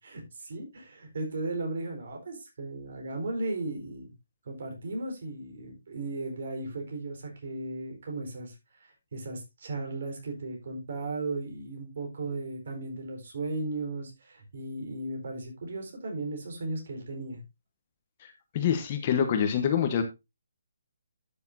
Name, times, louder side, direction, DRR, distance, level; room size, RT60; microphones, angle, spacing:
voice 1, 0.0-4.1 4.4-8.5 8.8-17.4, right 2 dB, 55° right, 2 dB, 4.6 m, -36 dB
voice 2, 18.5-20.0, left 8 dB, 30° left, 7 dB, 1.2 m, -25 dB
12.0 x 6.9 x 2.7 m, 0.23 s
hypercardioid pair, 170°, 0 cm